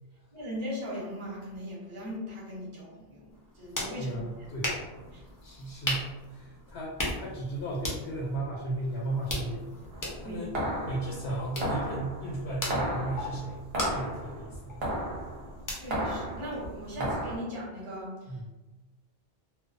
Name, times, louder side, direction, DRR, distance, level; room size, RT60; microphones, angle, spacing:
voice 1, 0.3-4.2 5.1-5.2 10.2-10.4 15.7-18.5, equal, 35° right, -6 dB, 0.7 m, -39 dB
sound 1, 3.3-17.0, left 1 dB, 30° left, 0.4 m, -39 dB
voice 2, 4.0-4.8 5.1-10.5 10.8-14.9 17.0-17.1 18.3-18.5, right 2 dB, 80° left, -5 dB, 0.8 m, -35 dB
sound 2, 9.9-17.4, right 1 dB, 75° right, 0.9 m, -34 dB
2.3 x 2.2 x 2.4 m, 1.1 s
omnidirectional pair, 1.0 m